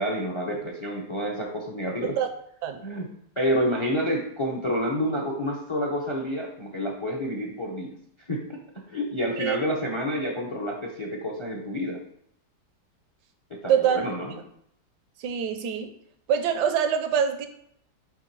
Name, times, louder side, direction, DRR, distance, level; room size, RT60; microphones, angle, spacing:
voice 1, 0.0-2.2 2.8-3.1 3.4-7.9 8.3-12.0 13.5-14.4, equal, 40° left, 1 dB, 0.4 m, -29 dB
voice 2, 13.7-14.0 15.2-15.9 16.3-17.5, right 8 dB, 80° right, 8 dB, 1.2 m, -24 dB
7.0 x 2.9 x 4.6 m, 0.69 s
omnidirectional pair, 1.8 m